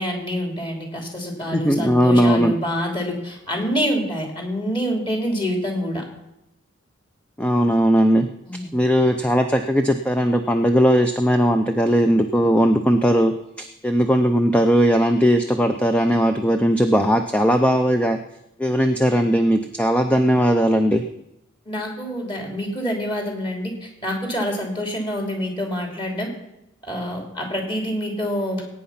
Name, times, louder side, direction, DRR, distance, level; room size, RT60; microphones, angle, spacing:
voice 1, 0.0-6.0 8.4-8.7 21.7-26.3 26.9-28.6, equal, 25° left, 1 dB, 3.1 m, -26 dB
voice 2, 1.5-2.5 7.4-8.3 8.7-18.2 18.6-21.0, equal, 5° left, 6 dB, 0.5 m, -18 dB
20.0 x 9.3 x 5.8 m, 0.88 s
head